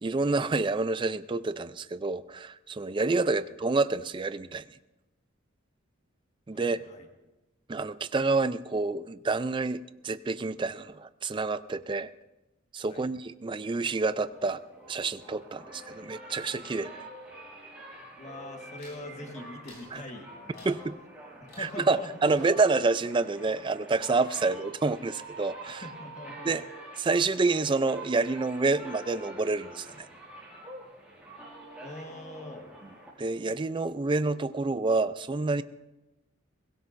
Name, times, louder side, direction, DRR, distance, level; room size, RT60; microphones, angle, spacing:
voice 1, 0.0-4.6 6.5-6.8 7.7-12.1 12.7-14.6 14.9-17.0 19.9-20.0 20.7-20.9 21.6-25.9 26.4-26.6 27.0-30.1 33.2-35.6, right 3 dB, 25° right, 13 dB, 0.4 m, -28 dB
voice 2, 6.5-7.1 12.9-13.1 18.2-20.8 21.4-22.4 24.4-24.5 25.7-26.5 31.8-32.7, left 1 dB, 35° left, 2 dB, 1.5 m, -43 dB
sound 1, 14.3-33.7, right 1 dB, 5° right, 4.5 m, -47 dB
sound 2, 18.8-19.1 19.6-20.0 20.5-20.9 21.5-22.0 22.3-24.6 24.8-25.4 25.7-26.2, left 2 dB, 50° left, 6.9 m, -57 dB
22.0 x 17.0 x 2.6 m, 1.0 s
head